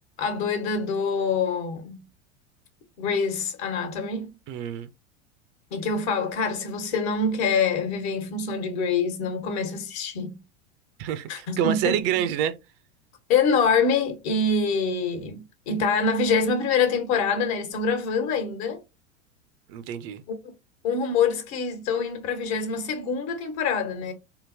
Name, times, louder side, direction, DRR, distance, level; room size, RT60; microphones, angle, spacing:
voice 1, 0.2-2.0 3.0-4.3 5.7-10.4 11.3-12.0 13.3-18.8 20.3-20.4 20.8-24.1, left 4 dB, 60° left, 1.2 m, -25 dB
voice 2, 4.5-4.9 11.0-12.5 19.7-20.2, right 9 dB, 45° right, 0.5 m, -27 dB
3.7 x 2.0 x 2.6 m
hypercardioid pair, 95°, 36 cm